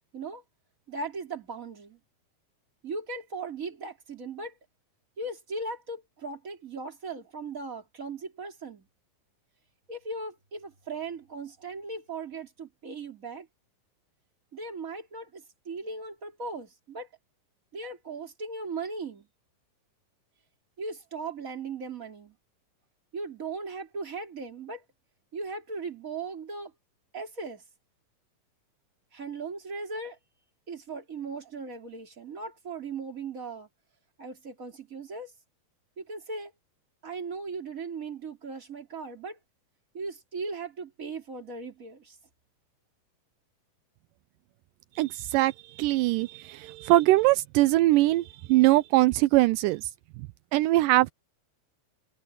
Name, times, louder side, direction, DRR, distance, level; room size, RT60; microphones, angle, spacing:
voice 1, 0.9-2.0 2.8-4.5 5.2-8.9 9.9-13.5 14.5-17.1 17.7-19.3 20.8-22.3 23.1-24.8 25.3-26.7 27.1-27.6 29.1-30.2 30.7-33.7 34.2-35.3 36.0-36.5 37.0-39.4 39.9-42.2, right 3 dB, 25° right, 3.4 m, -38 dB
voice 2, 45.0-49.8 50.5-51.1, right 17 dB, 85° right, 2.2 m, -22 dB
omnidirectional pair, 3.8 m